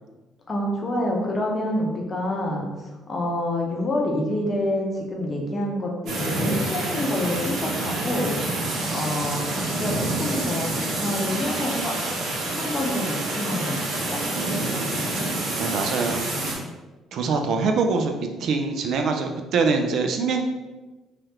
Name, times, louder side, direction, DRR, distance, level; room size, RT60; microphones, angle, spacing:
voice 1, 0.5-2.7 3.1-8.4 8.9-11.9 12.5-14.2, left 1 dB, 30° left, 0 dB, 0.6 m, -27 dB
sound 1, 6.1-16.5, right 2 dB, 75° right, 0.8 m, -27 dB
voice 2, 15.6-16.2 17.1-18.1 18.4-20.4, right 4 dB, 60° right, 4 dB, 0.3 m, -23 dB
3.3 x 2.3 x 2.9 m, 1.2 s
cardioid pair, 130°, 0 cm